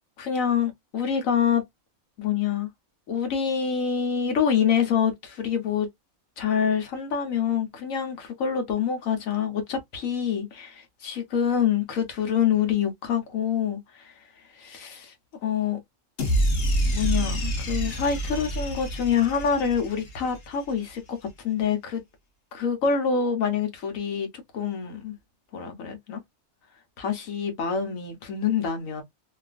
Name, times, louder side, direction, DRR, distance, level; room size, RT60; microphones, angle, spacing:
voice 1, 0.2-1.6 2.2-2.7 3.1-5.9 6.4-14.1 14.6-15.1 15.4-15.8 16.9-21.2 21.4-22.0 22.5-24.3 24.5-25.1 25.5-26.2 27.0-29.0, left 7 dB, 80° left, 1.3 m, -26 dB
sound 1, 16.2-20.5, right 1 dB, 50° left, 1.1 m, -27 dB
2.9 x 2.4 x 2.4 m
omnidirectional pair, 1.4 m